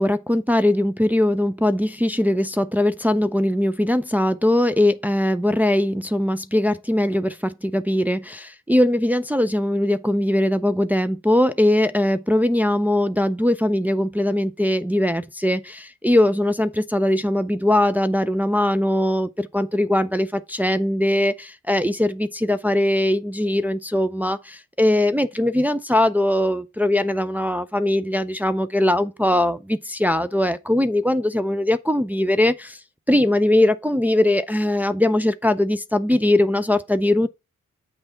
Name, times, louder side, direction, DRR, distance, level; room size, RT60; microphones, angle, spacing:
voice 1, 0.0-32.8 33.1-37.3, left 1 dB, 5° right, 0.5 m, -21 dB
8.0 x 3.4 x 5.6 m
cardioid pair, 70°, 31 cm